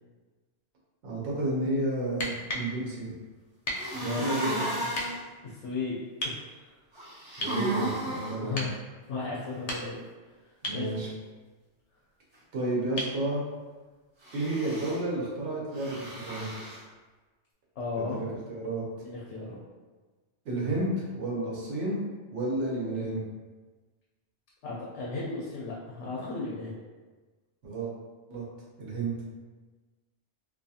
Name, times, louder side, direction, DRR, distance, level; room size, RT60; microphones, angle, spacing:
voice 1, 1.0-3.1 4.0-4.9 7.4-8.6 10.6-11.1 12.5-13.4 14.3-16.6 17.9-18.8 20.4-22.0 22.3-23.2 27.6-27.9 28.3-28.4 28.8-29.1, right 2 dB, 90° right, -5 dB, 1.1 m, -31 dB
sound 1, 2.1-2.7 3.6-3.9 4.9-5.1 6.2-6.4 7.4-7.6 8.5-8.8 9.5-10.1 10.6-10.9 13.0-13.2 15.0-15.1, equal, 60° left, 0.4 m, -34 dB
sound 2, 3.7-5.2 6.9-8.3 14.2-15.0 15.7-16.8, right 1 dB, 35° right, 0.5 m, -34 dB
voice 2, 5.4-6.0 6.2-6.7 8.3-8.7 9.1-10.0 10.7-10.9 17.8-18.2 19.0-19.6 24.6-26.7, left 3 dB, 85° left, -5 dB, 0.9 m, -35 dB
2.6 x 2.3 x 2.7 m, 1.3 s
omnidirectional pair, 1.2 m